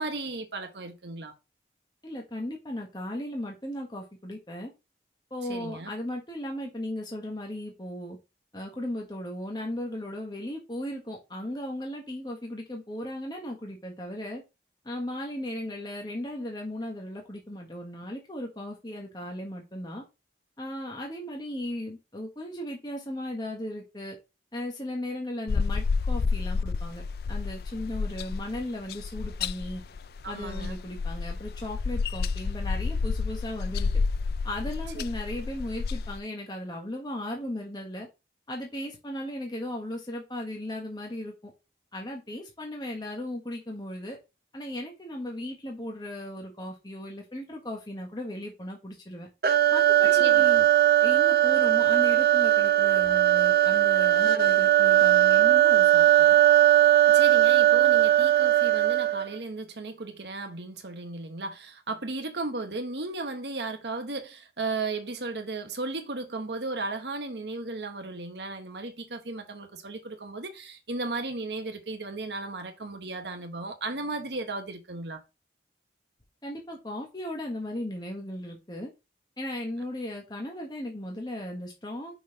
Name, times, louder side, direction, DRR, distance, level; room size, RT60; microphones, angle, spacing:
voice 1, 0.0-1.3 5.5-5.9 30.2-30.8 34.9-35.0 50.2-50.4 57.0-75.2, right 3 dB, 80° right, 1.3 m, -35 dB
voice 2, 2.0-4.7 5.3-8.2 8.5-14.4 14.8-20.0 20.6-24.2 24.5-27.0 27.3-29.8 30.2-33.9 34.4-38.1 38.5-41.5 41.9-44.2 44.5-49.3 49.7-50.7 51.0-56.3 76.4-78.9 79.4-82.1, left 1 dB, 25° left, 1.3 m, -36 dB
sound 1, 25.5-36.2, left 4 dB, 60° left, 0.4 m, -30 dB
sound 2, 49.4-59.4, right 13 dB, 55° right, 0.7 m, -19 dB
6.2 x 3.9 x 5.1 m
head